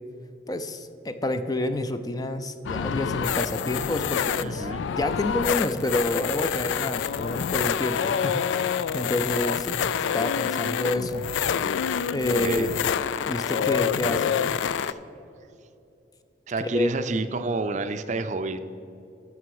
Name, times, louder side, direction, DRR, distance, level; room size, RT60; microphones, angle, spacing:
voice 1, 0.5-9.8 10.1-11.3 12.1-12.7 13.3-14.5 16.6-16.9, left 2 dB, 20° left, 9 dB, 0.4 m, -29 dB
sound 1, 2.6-14.9, left 8 dB, 85° left, 0.3 m, -27 dB
voice 2, 4.4-4.9 12.4-12.7 14.8-15.0 16.5-18.6, right 2 dB, 40° right, 10 dB, 0.5 m, -29 dB
13.0 x 6.0 x 4.7 m, 2.7 s
head